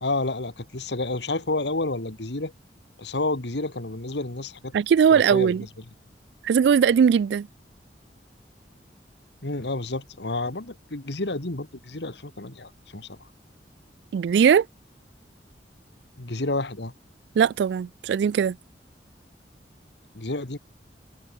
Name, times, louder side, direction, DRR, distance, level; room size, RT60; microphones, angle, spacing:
voice 1, 0.0-2.5 3.0-4.7 5.1-5.5 9.4-13.2 16.2-16.9 20.1-20.6, left 2 dB, 75° left, 1.9 m, -30 dB
voice 2, 4.7-5.6 6.4-7.5 14.1-14.7 17.4-18.6, right 7 dB, 70° right, 0.3 m, -19 dB
head